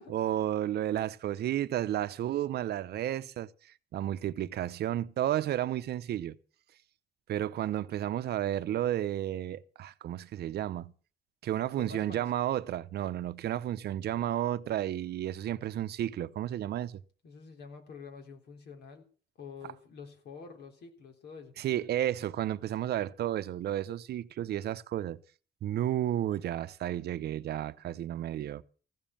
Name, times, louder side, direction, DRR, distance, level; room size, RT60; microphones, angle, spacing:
voice 1, 0.1-3.5 3.9-6.4 7.3-10.9 11.4-17.0 21.6-25.2 25.6-28.6, right 12 dB, 60° right, 0.8 m, -32 dB
voice 2, 11.8-12.3 17.2-19.1 19.4-21.5, left 5 dB, 60° left, 3.7 m, -47 dB
15.5 x 7.2 x 8.7 m
cardioid pair, 150°, 18 cm